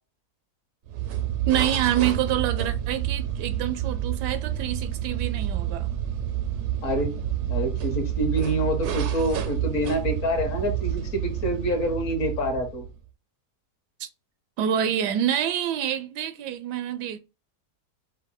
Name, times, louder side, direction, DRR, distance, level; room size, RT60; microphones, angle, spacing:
sound 1, 0.9-13.0, right 11 dB, 70° right, 0.7 m, -29 dB
voice 1, 1.5-5.9 14.0-14.1 14.6-17.2, right 10 dB, 85° right, 1.2 m, -27 dB
voice 2, 6.8-7.2 7.5-12.8, equal, 55° left, 1.4 m, -27 dB
5.2 x 2.2 x 3.7 m
omnidirectional pair, 1.7 m